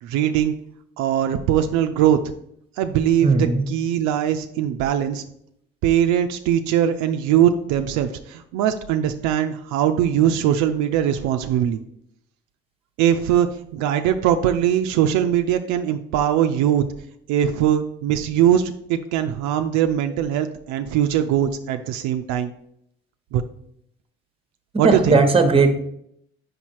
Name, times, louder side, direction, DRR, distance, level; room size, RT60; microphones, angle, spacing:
voice 1, 0.0-0.5 1.0-2.2 2.8-3.4 3.7-5.2 5.8-11.8 13.0-13.5 13.7-16.8 17.3-22.5 23.3-23.4 24.8-25.2, right 10 dB, 75° right, 7 dB, 0.5 m, -21 dB
voice 2, 3.2-3.7 24.8-25.8, right 4 dB, 20° right, 7 dB, 1.0 m, -17 dB
5.2 x 4.2 x 4.5 m, 0.74 s
supercardioid pair, 65°, 30 cm